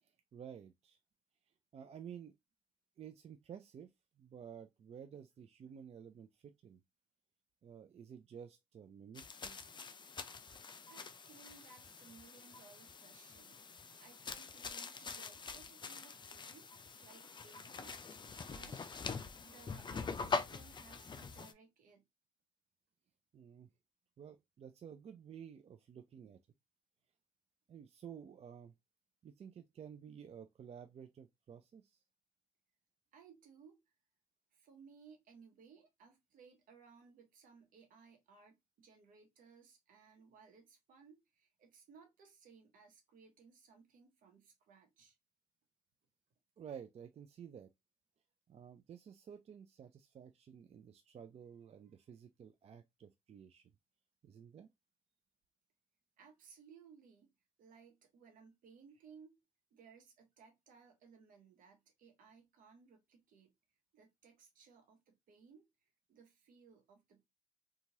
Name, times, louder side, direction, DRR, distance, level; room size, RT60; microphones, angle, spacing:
voice 1, 0.0-1.0 1.7-2.3 3.0-3.9 4.2-6.8 7.6-9.6 23.3-23.7 24.2-26.4 27.7-28.7 29.2-32.0 46.6-47.7 48.5-53.7 54.2-54.7, right 8 dB, 50° right, 0.4 m, -52 dB
sound 1, 9.1-21.5, left 4 dB, 35° left, 0.4 m, -44 dB
voice 2, 10.9-22.1 33.1-33.8 34.5-45.2 56.2-57.3 57.6-59.4 59.7-63.5 63.9-67.2, right 5 dB, 75° right, 1.0 m, -62 dB
2.9 x 2.4 x 2.7 m
supercardioid pair, 50°, 14 cm